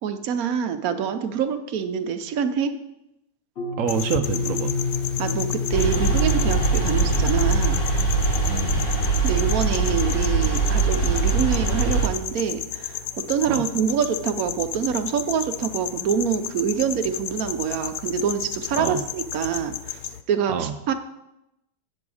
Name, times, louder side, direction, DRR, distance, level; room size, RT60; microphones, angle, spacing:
voice 1, 0.0-2.8 5.2-7.8 9.0-13.0 13.3-20.0 20.3-20.9, right 7 dB, 65° right, 9 dB, 1.0 m, -26 dB
sound 1, 3.6-8.8, left 4 dB, 40° left, 1.4 m, -29 dB
voice 2, 3.8-4.8 8.5-8.8 13.5-13.6 18.8-19.0 20.5-20.7, right 8 dB, 85° right, 9 dB, 0.7 m, -27 dB
sound 2, 3.9-20.2, left 11 dB, 75° left, 1.1 m, -33 dB
sound 3, 5.7-12.1, right 3 dB, 55° left, 3.0 m, -22 dB
8.5 x 7.8 x 4.8 m, 0.86 s
omnidirectional pair, 1.9 m